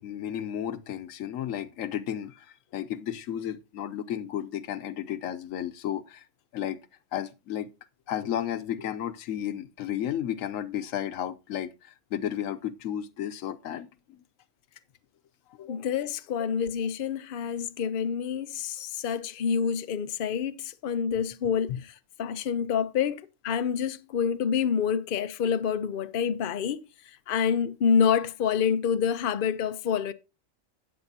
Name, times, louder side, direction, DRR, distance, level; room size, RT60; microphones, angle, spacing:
voice 1, 0.0-6.2 6.5-6.8 7.1-7.7 8.1-14.2 15.6-15.8 21.7-21.8, left 10 dB, 90° left, 1.1 m, -33 dB
voice 2, 15.7-21.9 22.2-30.1, left 7 dB, 50° left, 0.8 m, -27 dB
13.0 x 8.9 x 2.7 m
omnidirectional pair, 1.3 m